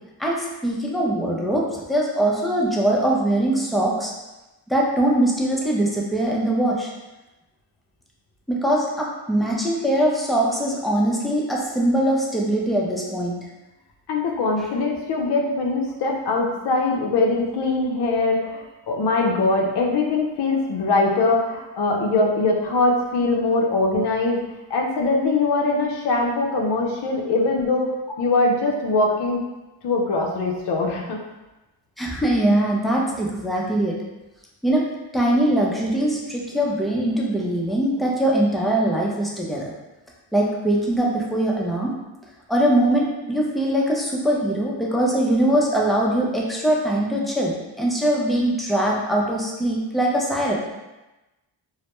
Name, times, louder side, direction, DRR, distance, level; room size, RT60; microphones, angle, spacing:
voice 1, 0.2-4.1 4.7-6.9 8.5-13.4 32.0-34.0 34.6-34.9 35.1-39.7 40.3-41.9 42.5-50.5, right 1 dB, ahead, -3 dB, 0.5 m, -22 dB
voice 2, 14.1-24.4 24.7-27.9 28.2-29.4 29.8-31.2, left 3 dB, 55° left, 0 dB, 0.5 m, -22 dB
2.1 x 2.1 x 2.9 m, 1.0 s
cardioid pair, 55°, 49 cm